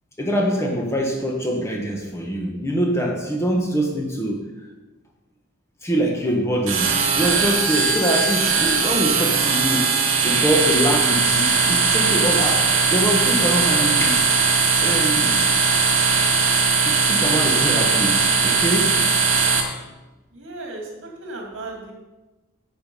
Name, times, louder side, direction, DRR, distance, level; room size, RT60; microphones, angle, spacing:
voice 1, 0.2-4.4 5.8-12.6 12.9-14.3 14.8-15.5 16.8-19.0, equal, 15° left, 0 dB, 1.3 m, -24 dB
sound 1, 6.7-19.6, right 5 dB, 75° right, 1.7 m, -19 dB
voice 2, 20.3-20.8 21.2-21.9, right 2 dB, 60° right, 0 dB, 2.6 m, -34 dB
9.6 x 7.3 x 5.4 m, 1.1 s
head